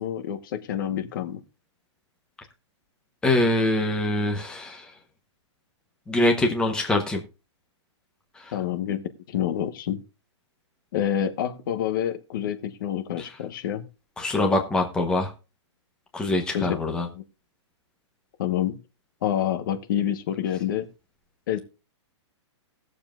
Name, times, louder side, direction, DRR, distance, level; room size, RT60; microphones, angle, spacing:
voice 1, 0.0-1.4 8.5-10.0 10.9-13.8 16.5-16.8 17.1-17.2 18.4-18.8 19.2-20.9 21.5-21.6, left 10 dB, 45° left, 9 dB, 1.2 m, -27 dB
voice 2, 3.2-4.9 6.1-7.2 8.4-8.5 14.2-15.3 16.1-17.1, left 2 dB, 5° left, 3 dB, 1.0 m, -24 dB
19.5 x 7.1 x 2.5 m, 0.31 s
hypercardioid pair, 170°, 15 cm